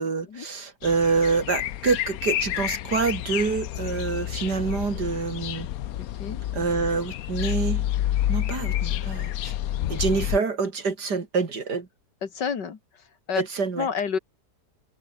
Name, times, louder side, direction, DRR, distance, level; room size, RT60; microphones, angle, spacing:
voice 1, 0.0-5.7 6.5-7.9 8.3-9.5 9.9-11.9 13.4-13.9, right 4 dB, 70° right, 3.3 m, -26 dB
sound 1, 0.8-10.4, left 13 dB, 65° left, 1.1 m, -29 dB
voice 2, 12.2-13.4 13.8-14.2, left 6 dB, 80° left, 2.6 m, -30 dB
omnidirectional pair, 1.8 m